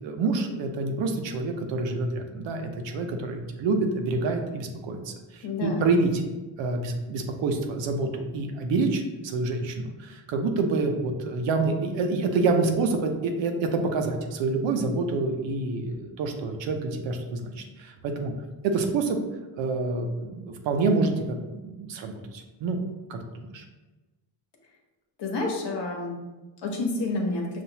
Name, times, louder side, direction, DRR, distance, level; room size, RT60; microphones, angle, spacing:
voice 1, 0.0-6.2 6.6-18.3 18.6-19.2 19.5-22.8 23.1-23.6, right 3 dB, 75° right, 4 dB, 0.7 m, -27 dB
voice 2, 5.4-5.9 25.2-26.1 26.6-27.4, left 3 dB, 65° left, 1 dB, 1.1 m, -29 dB
5.6 x 2.5 x 2.8 m, 1.2 s
cardioid pair, 80°, 45 cm